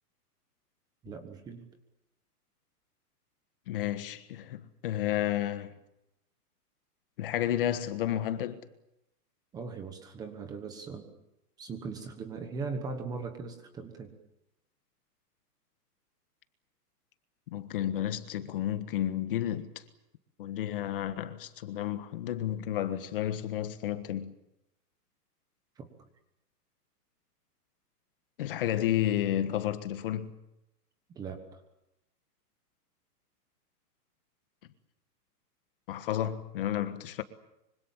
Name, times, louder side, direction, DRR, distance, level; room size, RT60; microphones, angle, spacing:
voice 1, 1.0-1.7 9.5-11.1 11.6-14.1 25.8-25.9 31.1-31.6, right 4 dB, 10° right, 1.2 m, -39 dB
voice 2, 3.7-5.7 7.2-8.6 17.5-19.8 20.4-24.3 28.4-30.3 35.9-37.2, left 11 dB, 35° left, 1.4 m, -31 dB
25.5 x 25.0 x 7.3 m
hypercardioid pair, 175°, 48 cm